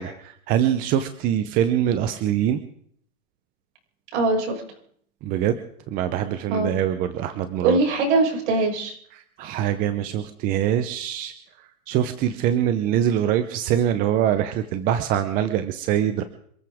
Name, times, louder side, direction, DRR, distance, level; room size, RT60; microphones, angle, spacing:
voice 1, 0.0-2.6 5.2-5.6 5.9-7.8 9.1-16.2, right 10 dB, 20° right, 10 dB, 0.8 m, -24 dB
voice 2, 4.1-4.6 6.5-6.8 7.6-8.9, right 3 dB, 55° right, 1 dB, 6.2 m, -22 dB
27.5 x 14.0 x 3.6 m, 0.62 s
hypercardioid pair, 155°, 42 cm